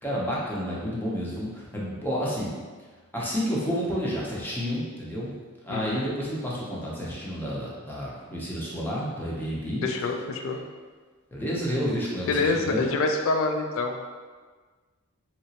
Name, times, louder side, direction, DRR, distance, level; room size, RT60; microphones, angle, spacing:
voice 1, 0.0-2.5 3.1-5.4 5.6-9.9 11.3-12.9, equal, 10° left, -6 dB, 0.6 m, -30 dB
voice 2, 5.7-6.0 9.8-10.6 12.3-14.0, left 3 dB, 65° left, 4 dB, 0.3 m, -26 dB
3.2 x 2.9 x 2.8 m, 1.4 s
head